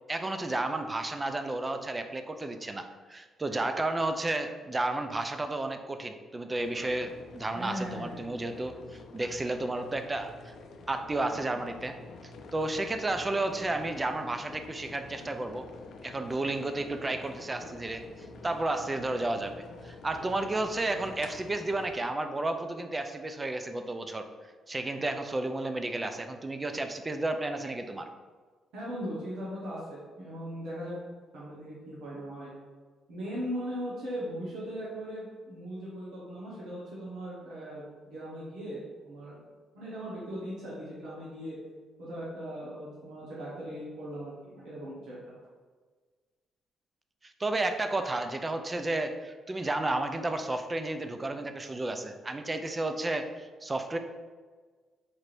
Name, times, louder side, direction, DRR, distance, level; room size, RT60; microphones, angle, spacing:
voice 1, 0.1-10.5 10.9-12.0 12.2-15.7 16.0-18.0 18.4-24.3 24.7-28.1 47.2-54.0, right 2 dB, 20° right, 7 dB, 0.4 m, -32 dB
sound 1, 6.6-22.1, left 3 dB, 70° left, 0.4 m, -48 dB
voice 2, 7.5-8.3 28.7-31.0 31.3-32.5 33.1-39.4 39.7-41.6 42.0-45.2, equal, 85° right, -8 dB, 1.0 m, -39 dB
4.4 x 2.5 x 3.2 m, 1.4 s
cardioid pair, 90°, 0 cm